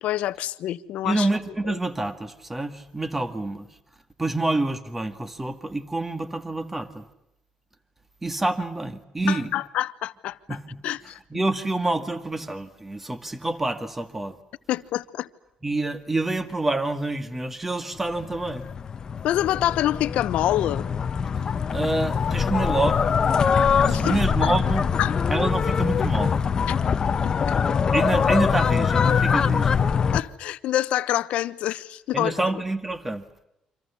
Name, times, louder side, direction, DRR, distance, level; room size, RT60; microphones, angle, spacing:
voice 1, 0.0-1.3 1.7-1.8 9.3-10.4 10.8-11.2 14.7-15.3 19.2-20.8 23.9-24.5 25.0-25.2 26.7-26.8 30.1-32.3, left 13 dB, 80° left, 1.2 m, -26 dB
voice 2, 1.0-3.7 4.2-7.1 8.2-9.5 10.5-10.7 11.3-14.4 15.6-18.6 21.7-23.1 23.9-24.9 25.3-26.4 27.9-29.8 32.1-33.3, right 2 dB, 10° right, 2.0 m, -27 dB
sound 1, 18.2-30.2, left 6 dB, 35° left, 1.1 m, -23 dB
29.0 x 26.5 x 7.1 m
cardioid pair, 150°, 2 cm